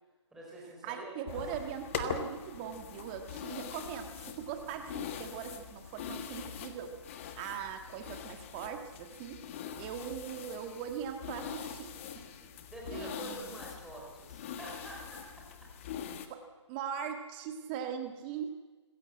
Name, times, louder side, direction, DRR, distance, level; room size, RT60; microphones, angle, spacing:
voice 1, 0.3-1.4 12.7-15.4, right 2 dB, 5° right, -3 dB, 4.8 m, -47 dB
voice 2, 0.8-7.0 7.4-9.4 9.8-12.6 12.9-13.6 16.3-16.4 16.7-18.5, right 8 dB, 20° right, 6 dB, 1.7 m, -40 dB
sound 1, 1.3-16.3, left 8 dB, 25° left, 1.6 m, -43 dB
25.5 x 16.0 x 7.7 m, 1.3 s
figure-of-eight pair, 155°, 16 cm